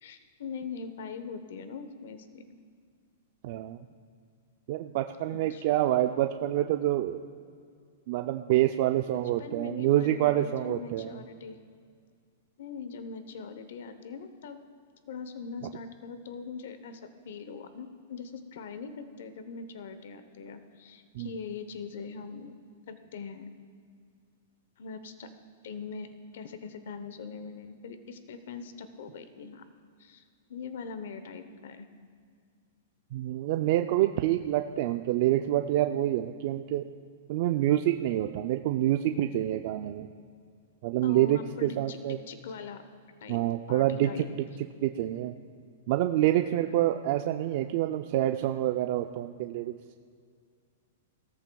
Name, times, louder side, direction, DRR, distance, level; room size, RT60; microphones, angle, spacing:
voice 1, 0.0-2.4 5.3-5.6 9.4-11.6 12.6-14.6 15.1-22.6 22.9-23.5 24.8-25.3 25.6-29.6 30.0-30.2 30.5-31.9 41.0-42.0 42.3-42.8 43.2-43.4 43.7-44.3, left 5 dB, 65° left, 10 dB, 0.8 m, -41 dB
voice 2, 3.4-3.8 4.7-7.2 8.1-11.2 21.1-21.3 33.1-36.8 37.3-40.1 40.8-42.2 43.3-44.3 44.6-45.3 45.9-49.7, right 13 dB, 45° right, 6 dB, 0.4 m, -27 dB
17.0 x 14.0 x 2.3 m, 2.1 s
hypercardioid pair, 155°, 0 cm